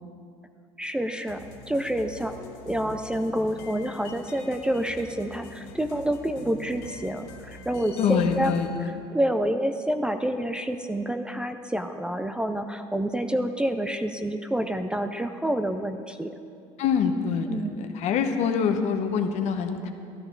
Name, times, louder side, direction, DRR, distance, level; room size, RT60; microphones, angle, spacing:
voice 1, 0.8-2.3 2.7-8.5 9.1-16.4 17.5-17.8, right 1 dB, 5° right, 8 dB, 0.4 m, -28 dB
sound 1, 1.3-8.7, left 3 dB, 85° left, 1.2 m, -45 dB
voice 2, 8.0-8.9 16.8-19.9, left 6 dB, 60° left, 6 dB, 1.0 m, -25 dB
13.0 x 11.5 x 3.8 m, 2.4 s
supercardioid pair, 105°, 13 cm